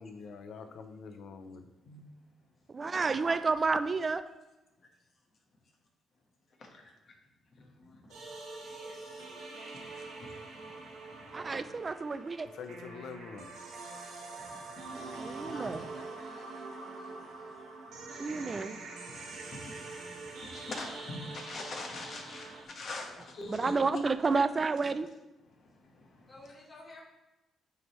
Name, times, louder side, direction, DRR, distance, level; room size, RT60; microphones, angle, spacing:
voice 1, 0.0-1.6 12.5-13.5, left 5 dB, 70° left, 8 dB, 0.5 m, -45 dB
voice 2, 2.7-4.2 11.3-12.5 14.9-15.8 18.2-18.8 23.5-25.1, right 4 dB, 35° right, 11 dB, 0.3 m, -30 dB
voice 3, 6.6-6.9 7.6-8.2 8.6-11.7 14.4-15.5 17.9-18.5 19.1-24.0 25.5-26.3, left 2 dB, 55° left, 0 dB, 1.3 m, -45 dB
sound 1, 8.1-22.6, right 3 dB, 80° right, 1.0 m, -45 dB
voice 4, 8.5-9.7 15.5-17.5 26.3-27.0, left 1 dB, 20° left, -6 dB, 1.3 m, -54 dB
9.1 x 3.5 x 3.1 m, 1.0 s
cardioid pair, 90°, 0 cm